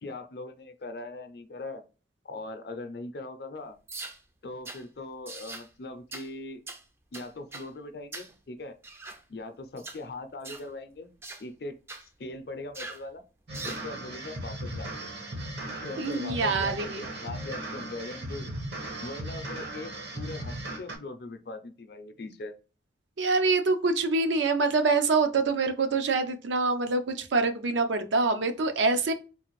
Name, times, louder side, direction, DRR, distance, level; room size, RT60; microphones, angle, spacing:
voice 1, 0.0-1.8 2.2-3.8 4.4-6.6 7.1-8.8 9.3-11.1 11.4-11.8 12.0-13.2 13.6-14.9 15.7-16.9 17.2-18.5 19.0-22.5, left 2 dB, 60° left, 8 dB, 0.5 m, -40 dB
sound 1, 3.9-4.2 4.6-4.8 5.3-5.7 6.1-6.3 6.7-6.8 7.1-7.7 8.1-8.3 8.8-9.2 9.8-10.0 10.4-10.7 11.2-11.4 11.9-12.1 12.7-13.0 13.5-13.9, right 3 dB, 15° right, 0.3 m, -41 dB
sound 2, 13.5-21.0, right 1 dB, 70° right, 0.9 m, -37 dB
voice 2, 16.0-17.0 23.2-29.1, right 3 dB, 85° right, 7 dB, 0.6 m, -25 dB
3.8 x 2.5 x 3.0 m, 0.35 s
head